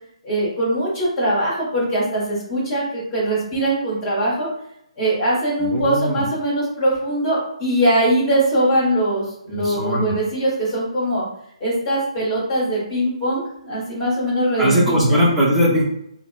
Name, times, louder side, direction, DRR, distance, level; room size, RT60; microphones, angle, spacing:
voice 1, 0.2-4.5 5.0-11.2 11.6-15.2, right 1 dB, 15° left, -7 dB, 1.1 m, -21 dB
voice 2, 5.6-6.2 9.5-10.1 14.6-15.8, equal, 5° right, -7 dB, 0.6 m, -19 dB
3.5 x 2.0 x 2.2 m, 0.74 s
figure-of-eight pair, 140°, 4 cm